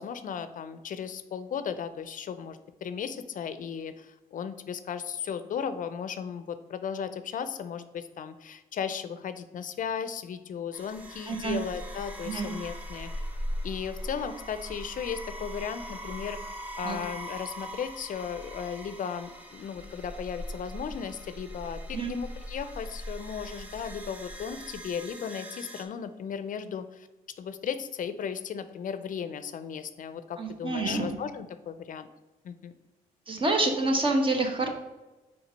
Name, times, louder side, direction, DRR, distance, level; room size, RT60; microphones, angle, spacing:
voice 1, 0.0-13.1 13.6-16.4 16.8-27.1 27.4-32.1 32.4-32.7, left 7 dB, 55° left, 12 dB, 0.5 m, -36 dB
sound 1, 10.7-25.8, equal, 10° right, 1.4 m, -40 dB
voice 2, 11.3-11.6 12.2-12.5 16.8-17.0 21.9-22.1 30.4-31.1 33.3-34.7, right 2 dB, 35° right, 4 dB, 1.3 m, -27 dB
5.0 x 4.8 x 5.2 m, 1.1 s
cardioid pair, 75°, 16 cm